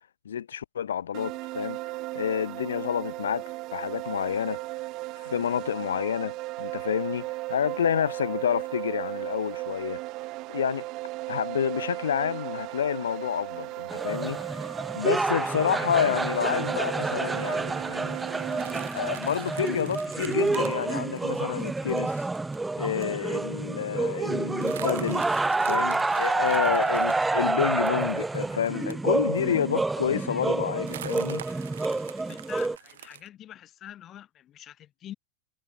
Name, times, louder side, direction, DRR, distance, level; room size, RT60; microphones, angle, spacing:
voice 1, 0.3-1.8 2.1-3.4 3.7-4.6 5.2-10.0 10.5-10.9 11.3-14.6 14.9-18.2 18.9-22.2 22.8-25.3 25.6-31.4, left 8 dB, 65° left, 0.4 m, -29 dB
sound 1, 1.1-18.9, right 20 dB, 40° right, 2.0 m, -36 dB
sound 2, 13.9-32.8, right 3 dB, 10° right, 0.7 m, -28 dB
sound 3, 18.5-22.6 23.0-23.2 23.4-23.5 23.8-24.0 24.6-29.6 30.0-30.1 30.8-33.3, right 11 dB, 60° right, 4.9 m, -45 dB
voice 2, 32.3-35.1, left 12 dB, 30° left, 5.4 m, -45 dB
figure-of-eight pair, 90°, 0 cm